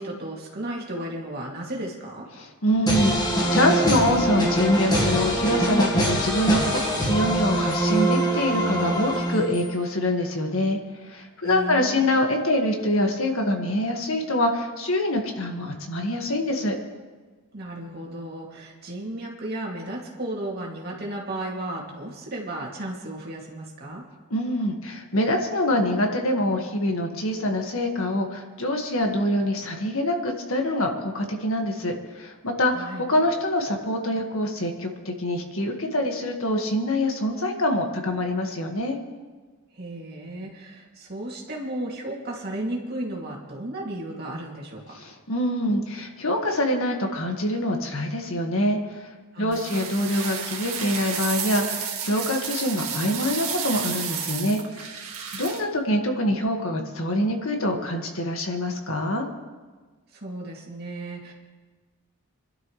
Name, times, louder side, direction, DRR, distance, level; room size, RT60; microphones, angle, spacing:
voice 1, 0.0-2.3 11.4-12.0 17.5-24.0 32.7-33.1 39.7-44.9 49.3-49.7 60.1-61.3, right 1 dB, 45° right, -2 dB, 2.6 m, -34 dB
voice 2, 2.4-10.8 11.1-16.8 24.3-39.0 44.9-49.1 49.4-54.9 55.3-59.3, left 1 dB, 70° left, 2 dB, 1.8 m, -25 dB
sound 1, 2.9-9.8, right 1 dB, 20° left, 1.6 m, -24 dB
sound 2, 49.5-55.6, right 7 dB, 80° right, 2.0 m, -31 dB
27.5 x 12.0 x 3.3 m, 1.4 s
head